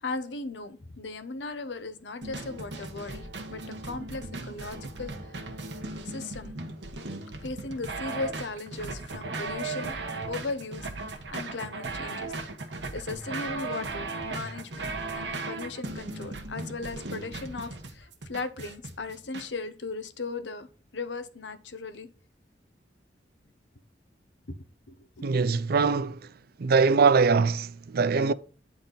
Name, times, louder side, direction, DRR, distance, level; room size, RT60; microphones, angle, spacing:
voice 1, 0.0-5.3 6.0-6.6 7.4-10.0 10.3-12.3 12.9-20.7 20.9-22.1 24.5-24.6 24.9-25.3, left 3 dB, 85° left, 0.9 m, -37 dB
sound 1, 2.2-19.5, right 3 dB, 75° right, 1.3 m, -37 dB
voice 2, 25.2-26.2 26.6-28.3, right 5 dB, 60° right, 0.5 m, -22 dB
9.7 x 4.3 x 3.9 m
head